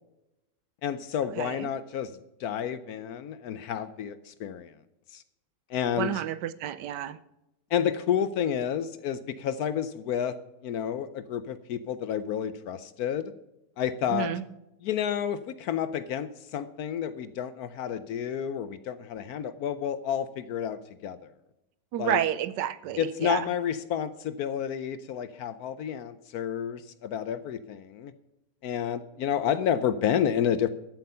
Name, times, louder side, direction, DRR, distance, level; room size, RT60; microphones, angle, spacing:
voice 1, 0.8-2.1 2.4-4.7 5.1-5.2 5.7-6.2 7.7-10.4 10.6-13.3 13.8-14.3 14.8-21.2 22.0-22.2 23.0-28.1 28.6-30.7, left 9 dB, 70° left, 14 dB, 1.0 m, -30 dB
voice 2, 1.4-1.7 6.0-7.2 14.1-14.4 21.9-23.5, right 11 dB, 75° right, 16 dB, 1.2 m, -30 dB
13.0 x 7.9 x 5.5 m, 0.91 s
omnidirectional pair, 1.9 m